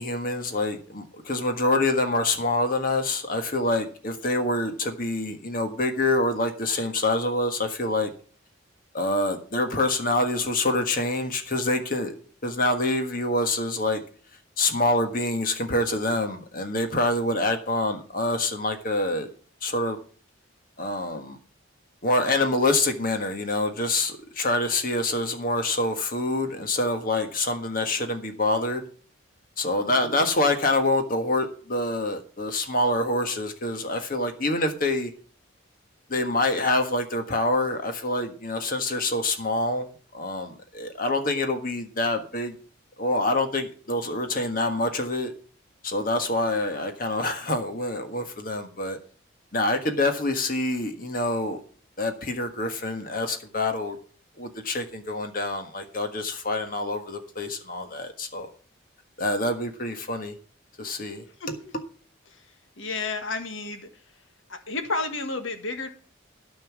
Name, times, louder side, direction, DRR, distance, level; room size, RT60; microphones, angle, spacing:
voice 1, 0.0-8.1 8.9-12.1 12.4-14.0 14.6-19.3 19.6-20.0 20.8-21.4 22.0-28.8 29.6-35.1 36.1-39.9 40.1-42.5 43.0-45.3 45.8-49.0 49.5-51.6 52.0-54.0 54.4-58.5 59.2-60.3 60.8-61.6, left 2 dB, 40° left, 6 dB, 1.5 m, -26 dB
voice 2, 62.8-63.9 64.5-65.9, left 3 dB, 70° left, 7 dB, 1.6 m, -31 dB
13.0 x 5.5 x 7.4 m, 0.42 s
head